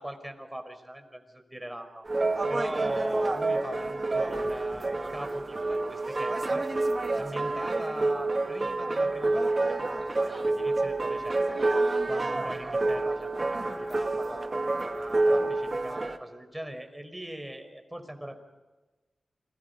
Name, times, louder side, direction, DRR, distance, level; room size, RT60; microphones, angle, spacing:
voice 1, 0.0-2.0 2.5-6.7 7.2-11.6 12.1-18.4, right 1 dB, 10° right, 6 dB, 5.0 m, -41 dB
sound 1, 2.1-16.2, right 2 dB, 40° right, 2.2 m, -28 dB
29.0 x 23.0 x 5.5 m, 1.2 s
cardioid pair, 60°, 0 cm